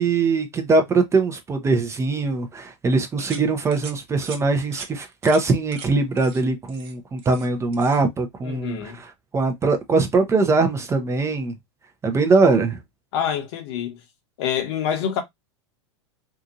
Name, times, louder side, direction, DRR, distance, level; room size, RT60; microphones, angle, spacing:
voice 1, 0.0-11.5 12.0-12.8, right 3 dB, 20° right, 0.6 m, -21 dB
sound 1, 3.2-3.4 3.7-3.9 4.2-4.4 4.7-4.9 5.2-5.4 5.7-5.9 6.2-6.4 6.7-7.5 7.7-8.0, right 6 dB, 40° right, 0.9 m, -39 dB
voice 2, 8.4-9.0 13.1-14.0 14.4-15.2, left 8 dB, 60° left, 1.0 m, -26 dB
2.8 x 2.5 x 2.5 m
hypercardioid pair, 105°, 15 cm